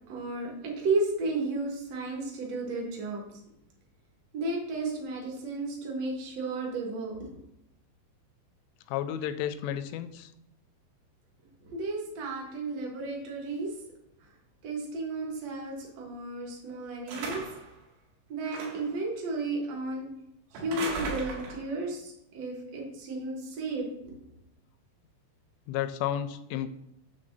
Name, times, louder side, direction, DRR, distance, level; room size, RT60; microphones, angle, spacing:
voice 1, 0.1-3.2 4.3-7.4 11.7-13.7 14.6-17.4 18.3-20.1 20.5-24.1, right 2 dB, 60° right, -1 dB, 1.7 m, -33 dB
voice 2, 8.9-10.3 25.7-26.7, left 10 dB, 85° left, 10 dB, 2.9 m, -32 dB
sound 1, 17.1-17.7 18.5-19.0 20.5-21.7, right 3 dB, 85° right, 4.3 m, -37 dB
9.8 x 3.5 x 6.6 m, 0.81 s
omnidirectional pair, 5.7 m